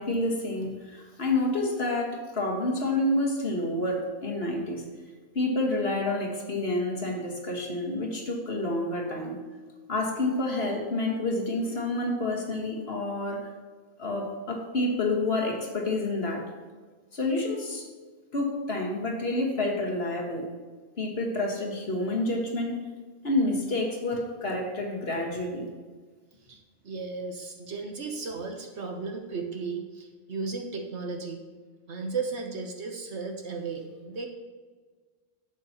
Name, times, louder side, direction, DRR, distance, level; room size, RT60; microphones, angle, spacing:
voice 1, 0.0-4.9 5.4-9.4 9.9-13.5 14.0-16.5 17.1-17.9 18.3-20.5 21.0-22.8 23.2-25.7, left 2 dB, 50° left, 0 dB, 1.8 m, -29 dB
voice 2, 26.5-31.4 31.9-34.3, right 4 dB, 60° right, 3 dB, 1.2 m, -35 dB
11.5 x 7.9 x 2.9 m, 1.4 s
omnidirectional pair, 1.4 m